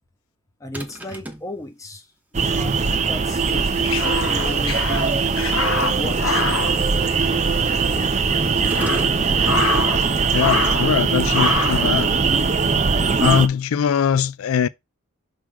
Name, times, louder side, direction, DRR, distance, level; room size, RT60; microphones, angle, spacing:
voice 1, 0.6-2.1 2.3-5.3 5.8-6.4, left 1 dB, 15° left, 1.2 m, -34 dB
sound 1, 0.7-1.5 8.6-9.2, right 1 dB, 10° right, 0.9 m, -36 dB
sound 2, 2.3-13.5, right 5 dB, 35° right, 0.6 m, -21 dB
sound 3, 3.5-7.6 7.9-8.0 8.5-10.1 10.3-11.0 11.3-11.9, left 3 dB, 70° left, 1.4 m, -25 dB
voice 2, 10.3-12.1 13.2-14.7, left 8 dB, 85° left, 0.4 m, -21 dB
6.2 x 3.8 x 4.7 m
head